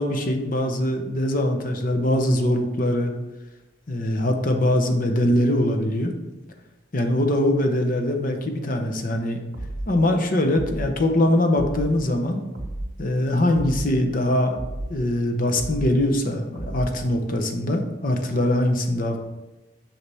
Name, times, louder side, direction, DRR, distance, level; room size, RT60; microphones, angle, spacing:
voice 1, 0.0-3.1 3.9-6.1 6.9-9.4 9.9-12.4 13.0-14.6 14.9-19.2, left 1 dB, 45° left, 4 dB, 0.8 m, -22 dB
sound 1, 9.5-9.9 10.5-10.9 11.5-11.9 12.5-12.9 13.5-13.9 14.5-14.9 15.6-16.0 16.6-17.0, right 1 dB, 55° right, 0.9 m, -32 dB
6.8 x 5.8 x 3.4 m, 1.0 s
head